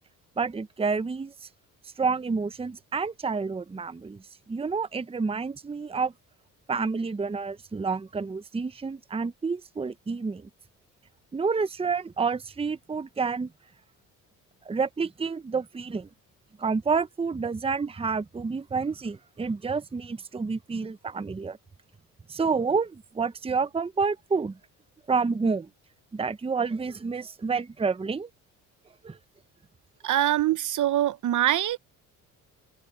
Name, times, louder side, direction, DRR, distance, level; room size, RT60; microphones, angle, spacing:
voice 1, 0.4-1.5 1.8-6.1 6.7-10.5 11.3-13.5 14.6-16.1 16.6-21.6 22.3-24.6 25.1-25.7 26.1-28.3 29.0-29.2, right 4 dB, 15° right, 0.8 m, -29 dB
voice 2, 30.0-31.8, right 12 dB, 60° right, 1.0 m, -24 dB
open air
supercardioid pair, 80°, 35 cm